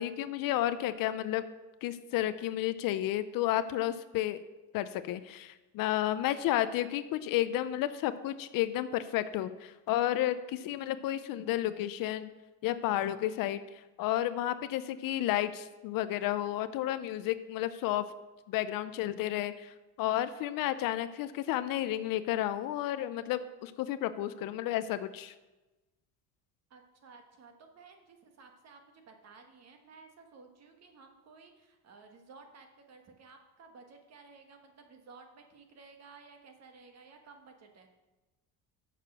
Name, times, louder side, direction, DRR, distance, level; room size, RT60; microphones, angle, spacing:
voice 1, 0.0-1.4 1.8-4.4 4.7-12.3 12.6-13.6 14.0-18.1 18.5-25.3, left 13 dB, 60° left, 13 dB, 0.5 m, -32 dB
voice 2, 6.1-6.6 26.7-37.9, right 4 dB, 40° right, 5 dB, 1.3 m, -55 dB
6.7 x 6.5 x 6.1 m, 1.1 s
cardioid pair, 130°, 39 cm